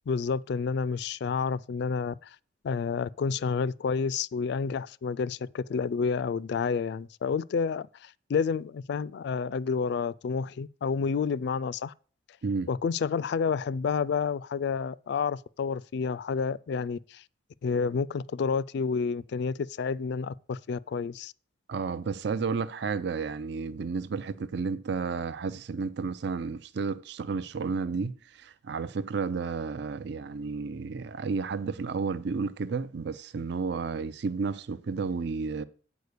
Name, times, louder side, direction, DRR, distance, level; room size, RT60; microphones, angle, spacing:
voice 1, 0.1-2.3 2.6-11.9 12.7-17.2 17.6-21.3, left 5 dB, 65° left, 0.3 m, -29 dB
voice 2, 21.7-35.6, right 4 dB, 60° right, 0.5 m, -32 dB
8.2 x 4.7 x 6.6 m
head